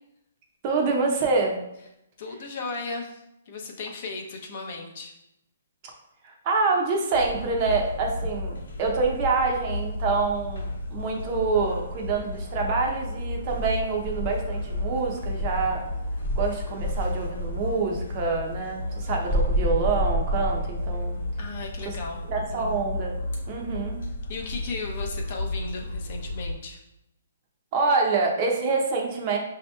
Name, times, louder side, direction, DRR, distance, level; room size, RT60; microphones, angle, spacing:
voice 1, 0.6-1.6 6.2-15.8 16.3-21.2 21.9-22.0 22.3-23.1 23.5-24.0 27.7-29.4, right 4 dB, 30° right, 1 dB, 0.5 m, -26 dB
voice 2, 2.2-5.1 21.4-22.8 24.3-26.8, left 3 dB, 40° left, 1 dB, 0.6 m, -36 dB
sound 1, 7.1-26.5, left 1 dB, 90° left, 1.0 m, -33 dB
Insect, 13.5-15.7 16.2-17.6 19.3-21.0, right 1 dB, ahead, 0.8 m, -28 dB
5.9 x 2.8 x 2.2 m, 0.86 s
hypercardioid pair, 165°, 0 cm